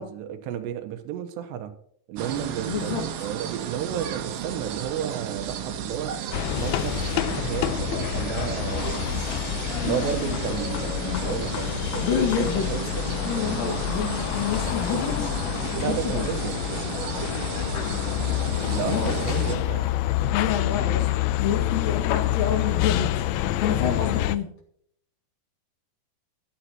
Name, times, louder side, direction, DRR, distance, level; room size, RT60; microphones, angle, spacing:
voice 1, 0.0-1.7 2.1-6.1 6.6-9.1 9.8-12.1 12.4-13.1 15.8-16.6 18.7-19.9 24.2-24.3, right 9 dB, 85° right, 8 dB, 3.2 m, -32 dB
sound 1, 2.2-19.6, right 8 dB, 65° right, 2.5 m, -34 dB
voice 2, 2.7-3.0 12.0-12.6 13.2-15.3 15.8-16.3 18.7-19.1 20.3-21.1 21.4-23.1 23.6-24.5, left 7 dB, 60° left, 1 dB, 3.2 m, -28 dB
sound 2, 6.3-24.4, left 13 dB, 80° left, 2.2 m, -27 dB
14.5 x 12.5 x 2.9 m, 0.65 s
omnidirectional pair, 4.9 m